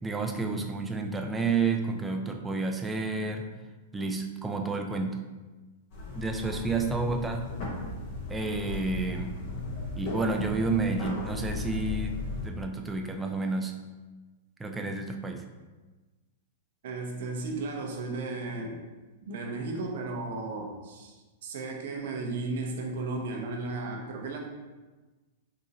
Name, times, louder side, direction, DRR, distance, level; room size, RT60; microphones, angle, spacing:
voice 1, 0.0-3.5 3.9-5.2 6.1-7.5 8.3-9.3 10.0-12.2 12.4-13.8 14.6-15.4, right 3 dB, 10° right, 3 dB, 0.4 m, -30 dB
sound 1, 5.9-12.5, left 2 dB, 50° left, 1.3 m, -36 dB
voice 2, 6.8-7.1 16.8-18.8 19.2-24.4, right 3 dB, 65° right, 1 dB, 0.7 m, -35 dB
3.9 x 2.7 x 2.9 m, 1.2 s
hypercardioid pair, 120°, 0 cm